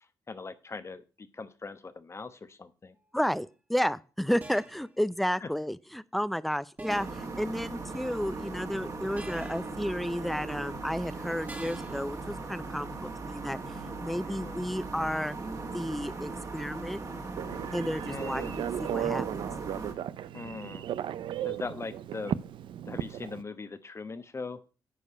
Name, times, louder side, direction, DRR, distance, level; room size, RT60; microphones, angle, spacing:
voice 1, 0.3-2.9 5.4-5.5 14.2-14.6 18.1-18.5 20.3-20.9 21.4-22.4 22.8-24.6, left 4 dB, 30° left, 1.0 m, -40 dB
voice 2, 3.1-13.6 14.0-15.4 15.7-17.0 17.7-19.3, equal, ahead, 0.5 m, -32 dB
sound 1, 3.2-3.4 4.4-4.9 6.8-7.3 9.2-9.8 11.5-12.1, right 2 dB, 20° right, 1.6 m, -45 dB
sound 2, 6.9-19.9, right 3 dB, 40° right, 1.9 m, -39 dB
Telephone, 17.4-23.4, right 10 dB, 75° right, 0.5 m, -35 dB
10.0 x 4.7 x 5.5 m
cardioid pair, 70°, 8 cm